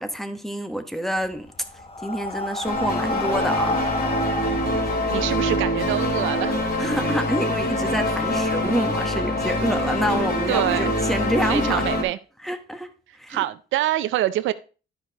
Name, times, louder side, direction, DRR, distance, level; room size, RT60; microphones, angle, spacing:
voice 1, 0.0-1.5 2.0-3.8 6.8-11.8 12.4-13.4, equal, ahead, 1.2 m, -27 dB
Breathing, 1.2-5.9, left 2 dB, 30° left, 0.9 m, -30 dB
sound 1, 2.6-12.0, left 1 dB, 50° left, 2.7 m, -24 dB
voice 2, 5.1-6.6 10.5-10.9 11.5-12.2 13.3-14.5, right 14 dB, 80° right, 0.5 m, -25 dB
11.0 x 4.9 x 4.0 m
cardioid pair, 90°, 20 cm